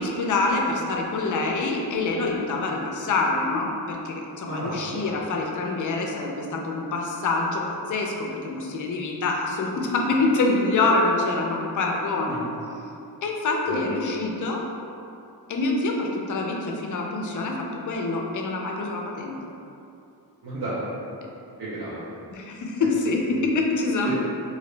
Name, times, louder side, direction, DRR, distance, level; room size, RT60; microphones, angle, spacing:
voice 1, 0.0-12.4 13.2-14.6 15.5-19.4 22.3-24.1, left 3 dB, 50° left, 0 dB, 0.4 m, -26 dB
voice 2, 4.4-5.1 12.3-12.4 13.7-13.8 20.4-20.9 21.6-22.2 23.4-23.5 24.0-24.1, right 2 dB, 70° right, -11 dB, 0.8 m, -32 dB
2.9 x 2.5 x 3.2 m, 2.7 s
wide cardioid pair, 160°, 39 cm